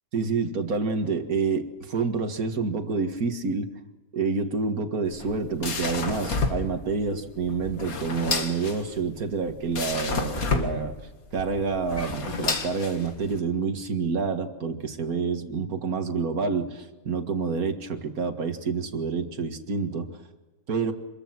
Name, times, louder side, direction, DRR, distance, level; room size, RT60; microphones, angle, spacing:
voice 1, 0.1-3.7 4.1-10.9 11.3-20.1 20.7-20.9, right 4 dB, 85° right, 7 dB, 2.3 m, -28 dB
sound 1, 5.0-13.4, left 4 dB, 80° left, 2.4 m, -31 dB
26.5 x 22.5 x 6.1 m, 1.2 s
omnidirectional pair, 1.5 m